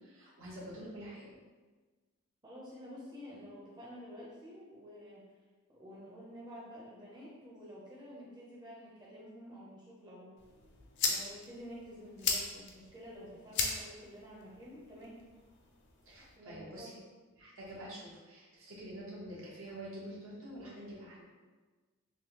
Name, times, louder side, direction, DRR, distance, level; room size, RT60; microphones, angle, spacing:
voice 1, 0.0-1.4 16.0-16.9 17.4-21.2, right 1 dB, 65° right, -6 dB, 1.0 m, -47 dB
voice 2, 2.4-5.2 5.7-10.3 11.0-15.2 16.4-17.0, equal, 20° right, -7 dB, 0.7 m, -50 dB
sound 1, 10.4-16.4, left 5 dB, 55° left, 0.5 m, -39 dB
3.3 x 2.5 x 2.9 m, 1.3 s
head